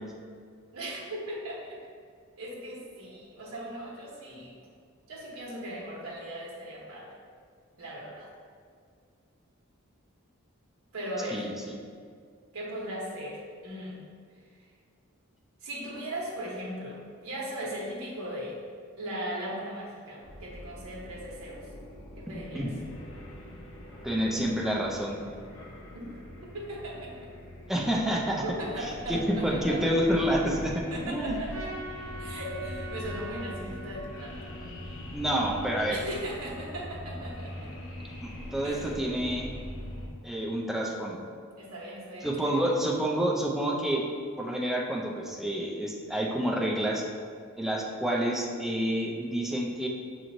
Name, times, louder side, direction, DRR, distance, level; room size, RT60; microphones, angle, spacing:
voice 1, 0.7-1.8 2.4-4.5 5.1-7.1 7.8-8.3 10.9-11.5 12.5-14.1 15.6-18.6 19.0-21.7 22.2-22.7 25.9-26.1 26.4-27.3 28.4-29.8 30.9-31.7 32.2-34.4 35.9-37.7 38.6-38.9 41.6-42.7, right 1 dB, 85° right, -4 dB, 1.1 m, -38 dB
voice 2, 11.3-11.7 22.3-22.7 24.0-25.2 27.7-28.4 28.8-31.4 35.1-36.0 38.2-39.5 40.2-41.2 42.2-44.0 44.4-47.0 47.6-49.9, right 1 dB, ahead, -2 dB, 0.4 m, -29 dB
sound 1, 20.2-40.1, left 1 dB, 70° left, 0.8 m, -42 dB
Trumpet, 31.5-35.9, right 1 dB, 65° right, 0.6 m, -44 dB
6.0 x 3.0 x 2.6 m, 2.1 s
head